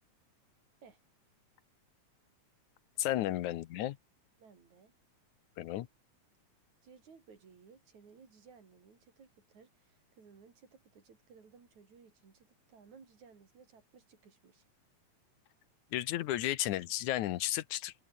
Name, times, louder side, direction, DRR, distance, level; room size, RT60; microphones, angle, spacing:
voice 1, 3.0-4.0 5.6-5.9 15.9-17.9, left 14 dB, 80° left, 2.3 m, -33 dB
voice 2, 4.4-4.9 6.8-14.7, right 5 dB, 70° right, 5.2 m, -59 dB
open air
omnidirectional pair, 3.5 m